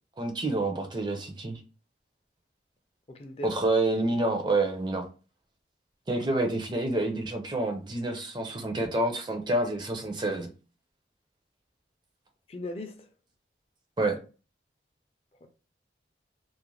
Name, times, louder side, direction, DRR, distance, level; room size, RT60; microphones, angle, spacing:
voice 1, 0.2-1.6 3.4-5.0 6.1-10.5 14.0-14.2, right 2 dB, 25° right, 0.4 m, -28 dB
voice 2, 3.1-3.5 12.5-13.1 15.4-15.5, left 1 dB, 35° left, 0.4 m, -39 dB
2.4 x 2.1 x 3.0 m
head